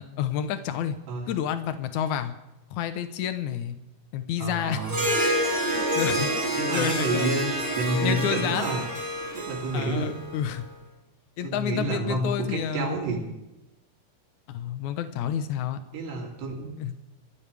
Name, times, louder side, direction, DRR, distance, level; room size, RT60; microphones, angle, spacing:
voice 1, 0.0-1.0 1.3-2.3 2.7-3.8 4.1-4.8 5.7-7.5 8.0-8.7 9.7-10.6 11.4-12.9 14.5-15.8 16.8-16.9, left 9 dB, 75° left, 9 dB, 1.7 m, -30 dB
voice 2, 4.4-5.4 6.6-8.8 9.3-10.2 11.4-13.2 15.9-16.8, right 2 dB, 80° right, -1 dB, 5.0 m, -29 dB
Harp, 4.8-10.5, right 1 dB, 35° right, 7.4 m, -28 dB
28.0 x 14.5 x 3.5 m, 0.97 s
omnidirectional pair, 4.8 m